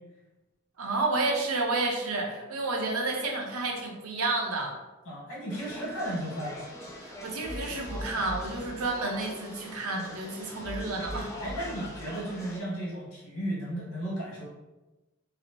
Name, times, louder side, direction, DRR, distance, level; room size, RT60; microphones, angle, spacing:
voice 1, 0.8-4.8 7.0-11.3, right 3 dB, 85° right, 0 dB, 0.7 m, -30 dB
voice 2, 5.0-6.7 11.4-14.5, right 1 dB, 70° left, -5 dB, 1.3 m, -34 dB
sound 1, 5.5-12.6, equal, 15° left, 0.3 m, -41 dB
3.9 x 2.0 x 2.9 m, 1.1 s
head